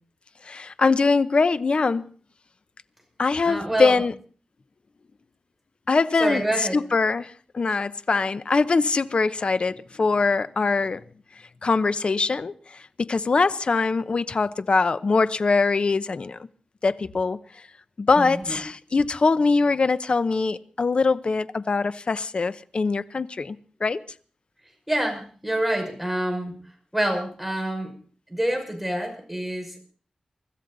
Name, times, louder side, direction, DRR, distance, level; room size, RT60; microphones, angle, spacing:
voice 1, 0.4-2.0 3.2-4.1 5.9-11.0 11.6-12.5 13.0-16.4 16.8-17.4 18.0-24.0, left 4 dB, 50° left, 0.8 m, -22 dB
voice 2, 3.4-4.0 6.2-6.8 18.2-18.6 24.9-26.6 26.9-27.9 28.3-29.8, right 1 dB, 5° right, 5.7 m, -27 dB
24.0 x 13.5 x 4.0 m
wide cardioid pair, 100°, 2 cm